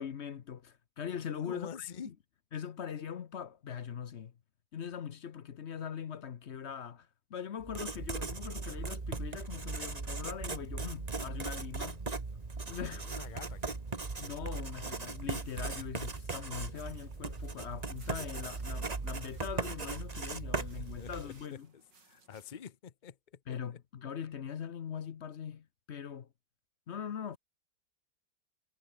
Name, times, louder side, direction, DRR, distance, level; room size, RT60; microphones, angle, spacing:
voice 1, 0.0-2.1 2.5-4.3 4.7-12.0 12.7-13.1 14.2-21.7 23.5-26.3 26.9-27.4, left 8 dB, 55° left, 0.8 m, -41 dB
voice 2, 1.5-2.1 13.0-13.8 21.0-23.6, left 7 dB, 85° left, 0.4 m, -46 dB
Writing, 7.6-21.4, right 3 dB, 20° right, 1.3 m, -38 dB
sound 1, 11.0-22.7, right 4 dB, 60° right, 4.7 m, -66 dB
omnidirectional pair, 2.2 m